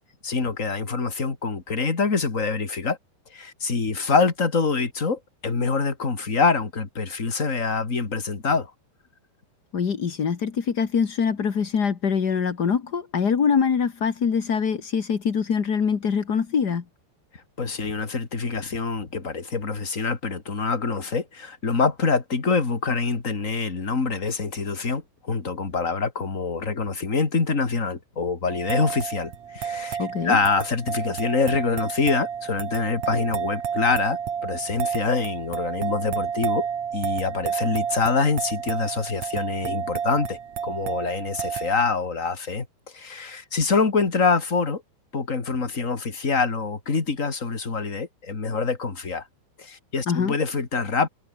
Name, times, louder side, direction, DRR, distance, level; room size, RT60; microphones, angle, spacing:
voice 1, 0.2-3.0 3.3-8.7 17.6-36.7 36.9-40.4 40.6-42.7 42.9-44.8 45.1-49.2 49.6-51.1, left 4 dB, 25° left, 2.2 m, -25 dB
voice 2, 9.7-16.8 30.0-30.4 50.1-50.3, left 6 dB, 55° left, 1.1 m, -24 dB
sound 1, 28.5-41.8, right 7 dB, 45° right, 3.3 m, -30 dB
omnidirectional pair, 4.7 m